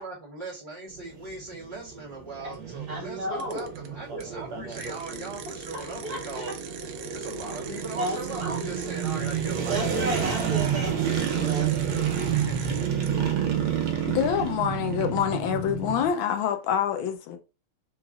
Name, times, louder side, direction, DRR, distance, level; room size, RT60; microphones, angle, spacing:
voice 1, 0.0-6.6 7.1-10.1 12.3-12.8, right 2 dB, 35° left, 1.1 m, -39 dB
sound 1, 0.9-16.1, right 8 dB, 70° right, 1.3 m, -30 dB
voice 2, 2.4-3.7 5.7-6.5 8.0-8.7 9.7-11.7, right 1 dB, 50° right, 1.5 m, -33 dB
sound 2, 3.4-3.9 4.2-4.3 4.7-10.7 11.1-13.1, right 9 dB, 85° right, 1.5 m, -43 dB
voice 3, 14.0-17.4, left 9 dB, 75° left, 1.3 m, -26 dB
3.8 x 3.1 x 2.3 m
omnidirectional pair, 2.4 m